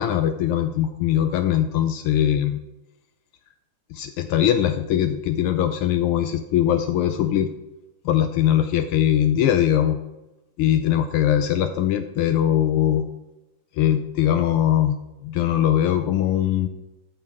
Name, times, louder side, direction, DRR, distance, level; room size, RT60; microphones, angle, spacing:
voice 1, 0.0-2.6 3.9-7.5 8.0-10.0 10.6-13.0 13.7-15.0 15.2-16.7, left 11 dB, 80° left, 7 dB, 1.5 m, -21 dB
14.0 x 6.8 x 3.6 m, 0.94 s
omnidirectional pair, 2.4 m